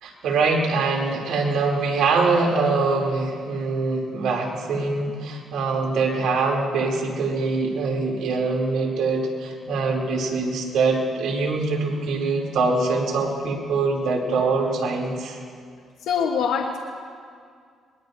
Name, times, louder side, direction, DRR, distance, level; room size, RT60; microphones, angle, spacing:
voice 1, 0.0-15.4, right 3 dB, 80° right, -1 dB, 2.8 m, -23 dB
voice 2, 16.0-16.8, left 6 dB, 85° left, 2 dB, 1.0 m, -23 dB
21.5 x 21.5 x 2.6 m, 2.1 s
cardioid pair, 90°, 0 cm